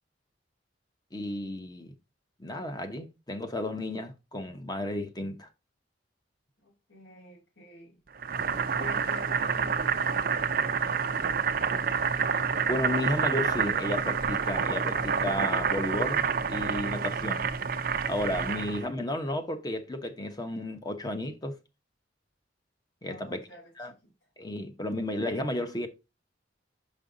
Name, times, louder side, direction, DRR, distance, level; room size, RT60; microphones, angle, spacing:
voice 1, 1.1-1.9 2.4-5.5 12.7-17.5 18.1-21.5 23.0-23.5 23.8-23.9 24.4-25.9, left 1 dB, 20° left, 1.0 m, -33 dB
voice 2, 6.6-8.0 8.8-11.4 18.4-18.7 23.0-24.3, left 2 dB, 75° left, 3.7 m, -49 dB
Boiling, 8.2-18.9, right 6 dB, 50° right, 0.6 m, -28 dB
6.3 x 5.4 x 3.8 m
head